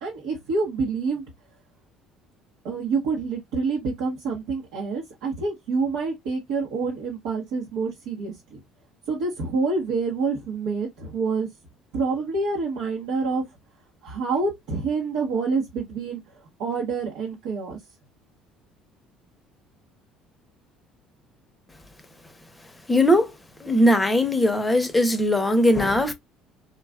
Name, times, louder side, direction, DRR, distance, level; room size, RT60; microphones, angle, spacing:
voice 1, 0.0-1.2 2.6-8.6 9.1-11.5 11.9-13.4 14.0-17.8, right 4 dB, 80° right, 1.0 m, -27 dB
voice 2, 22.9-23.3 23.6-26.1, left 1 dB, 10° left, 0.7 m, -19 dB
3.9 x 2.3 x 2.2 m
supercardioid pair, 100°, 0 cm